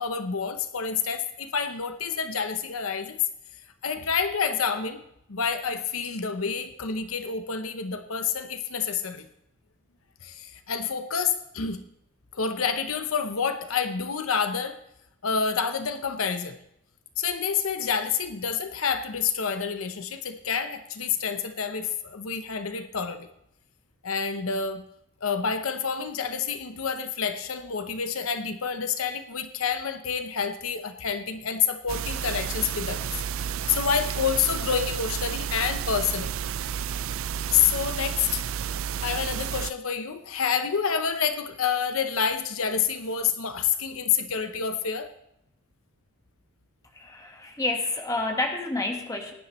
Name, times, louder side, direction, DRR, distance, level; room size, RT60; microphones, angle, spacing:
voice 1, 0.0-3.2 3.8-5.0 5.3-9.3 10.2-11.8 12.3-14.8 15.2-16.6 17.2-23.3 24.0-24.8 25.2-33.1 33.7-36.3 37.5-38.4 39.0-45.1, left 6 dB, 70° left, 9 dB, 0.8 m, -28 dB
sound 1, 31.9-39.7, right 8 dB, 65° right, 0.4 m, -31 dB
voice 2, 46.9-49.3, left 2 dB, 15° left, 3 dB, 1.5 m, -29 dB
18.0 x 10.5 x 3.1 m, 0.78 s
head